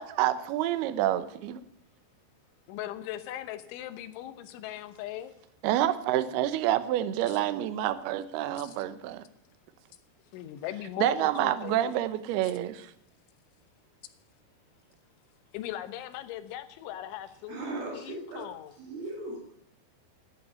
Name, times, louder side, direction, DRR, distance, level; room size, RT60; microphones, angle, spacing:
voice 1, 0.0-1.6 5.6-9.2 11.0-12.9, right 13 dB, 75° right, 2.5 m, -28 dB
voice 2, 2.7-5.3 8.6-8.8 10.3-11.9 15.5-17.6 17.9-18.7, left 12 dB, 80° left, 3.4 m, -39 dB
voice 3, 17.5-19.5, right 2 dB, 60° right, 3.2 m, -38 dB
11.5 x 8.5 x 9.0 m
omnidirectional pair, 5.4 m